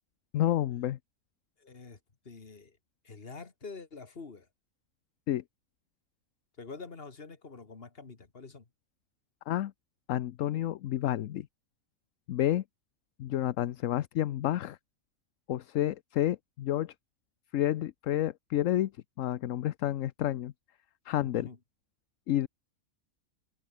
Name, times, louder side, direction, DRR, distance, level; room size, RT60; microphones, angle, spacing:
voice 1, 0.3-1.0 5.3-5.4 9.5-9.7 10.1-11.5 12.3-12.6 13.2-14.8 15.5-16.9 17.5-18.9 19.2-20.5 21.1-21.5 22.3-22.5, left 13 dB, 75° left, 1.0 m, -30 dB
voice 2, 1.6-2.0 2.2-2.8 3.0-4.5 6.6-8.7 21.2-21.6, left 4 dB, 45° left, 2.2 m, -46 dB
omnidirectional pair, 1.4 m